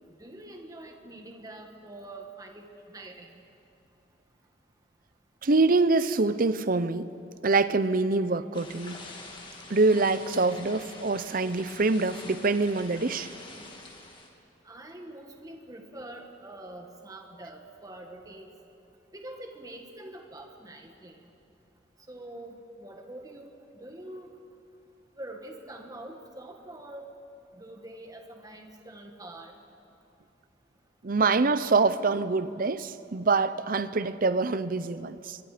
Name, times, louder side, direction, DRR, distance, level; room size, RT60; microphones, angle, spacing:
voice 1, 0.2-3.3 14.6-18.5 19.1-21.2 22.1-22.5 22.8-23.5 23.8-24.3 25.2-27.1 27.5-29.5, right 1 dB, 20° right, 3 dB, 1.8 m, -44 dB
voice 2, 5.4-7.1 7.4-9.0 9.7-13.3 31.0-35.4, right 3 dB, 50° right, 14 dB, 0.7 m, -25 dB
sound 1, 8.5-14.3, left 2 dB, 25° left, 2.1 m, -46 dB
25.0 x 23.5 x 5.1 m, 2.8 s
head